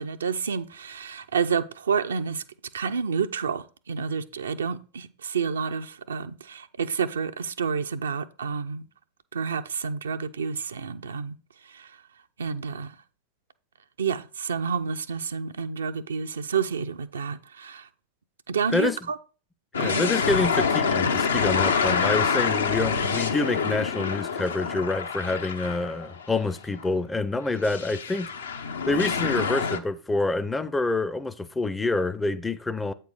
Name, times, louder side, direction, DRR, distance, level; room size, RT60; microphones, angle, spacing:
voice 1, 0.0-2.4 2.7-8.9 9.3-11.4 11.6-12.0 12.4-13.0 14.0-17.9 18.5-19.2 19.8-20.0, right 6 dB, 70° right, 0.5 m, -29 dB
sound 1, 19.7-26.3 26.7-26.8 27.6-29.8, left 5 dB, 70° left, 0.7 m, -26 dB
voice 2, 19.8-28.3 28.9-32.9, left 3 dB, 10° left, 0.5 m, -27 dB
8.2 x 4.5 x 4.8 m
figure-of-eight pair, 90°, 0 cm